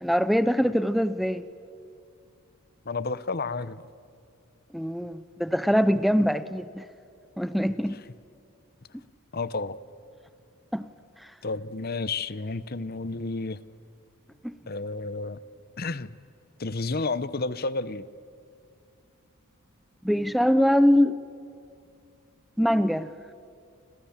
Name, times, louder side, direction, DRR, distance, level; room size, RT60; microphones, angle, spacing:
voice 1, 0.0-1.4 4.7-6.8 7.4-8.0 10.7-10.8 11.2-11.3 14.4-14.5 20.0-21.2 22.6-23.1, equal, ahead, 13 dB, 0.6 m, -23 dB
voice 2, 2.9-3.9 9.3-9.8 11.4-13.6 14.7-15.4 15.8-16.1 16.6-18.1, left 3 dB, 45° left, 16 dB, 0.8 m, -31 dB
30.0 x 27.0 x 7.3 m, 2.5 s
head